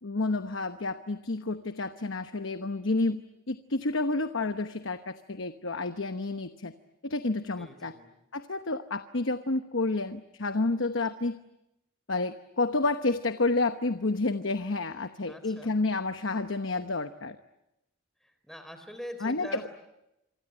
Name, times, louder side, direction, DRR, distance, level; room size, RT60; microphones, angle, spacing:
voice 1, 0.0-6.7 7.0-7.9 8.3-11.4 12.1-17.4 19.2-19.7, left 3 dB, 60° left, 9 dB, 1.0 m, -30 dB
voice 2, 7.6-8.1 15.3-15.7 18.2-19.7, equal, ahead, 8 dB, 4.0 m, -43 dB
27.0 x 24.5 x 9.0 m, 0.89 s
head